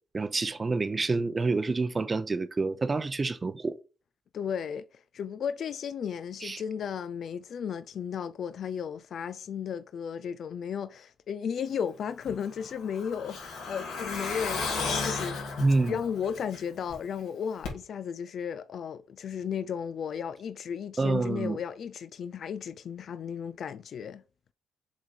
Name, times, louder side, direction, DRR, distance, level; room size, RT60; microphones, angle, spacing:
voice 1, 0.1-3.8 6.4-6.6 15.6-16.0 21.0-21.6, right 3 dB, 25° right, 0.7 m, -28 dB
voice 2, 4.3-15.4 15.9-24.2, left 7 dB, 60° left, 0.4 m, -34 dB
Truck, 12.2-16.9 17.2-17.3 17.6-17.7, left 4 dB, 80° left, 3.1 m, -34 dB
7.1 x 3.7 x 4.7 m
cardioid pair, 90°, 0 cm